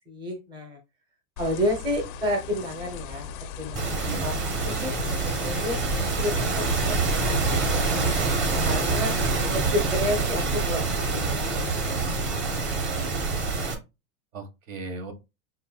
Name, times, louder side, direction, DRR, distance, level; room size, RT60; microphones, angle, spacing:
voice 1, 0.1-0.8 1.4-3.3 3.6-4.4 4.6-8.2 8.6-9.1 9.5-13.1, left 1 dB, 10° right, 0.7 m, -31 dB
sound 1, 1.4-8.9, left 5 dB, 40° left, 0.4 m, -38 dB
sound 2, 3.7-13.7, right 3 dB, 25° right, 1.2 m, -26 dB
voice 2, 4.0-4.4 8.9-10.1 12.9-13.3 14.3-15.1, right 3 dB, 65° right, 1.4 m, -38 dB
6.5 x 2.7 x 2.3 m
supercardioid pair, 145°, 42 cm